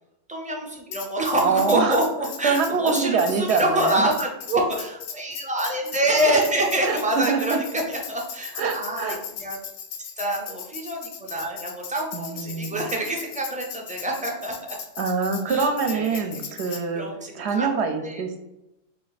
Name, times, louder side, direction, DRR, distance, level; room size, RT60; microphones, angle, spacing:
voice 1, 0.3-9.6 10.2-14.8 15.5-16.2 16.7-17.7 18.0-18.4, right 1 dB, 10° right, 0 dB, 0.5 m, -26 dB
Tambourine, 0.9-16.8, left 7 dB, 90° left, 0.9 m, -38 dB
voice 2, 1.4-2.0 2.4-4.1 6.8-7.6 8.6-9.2 12.1-12.8 15.0-17.1 17.3-18.3, right 5 dB, 75° right, 5 dB, 0.8 m, -25 dB
4.5 x 2.5 x 4.0 m, 0.89 s
omnidirectional pair, 1.2 m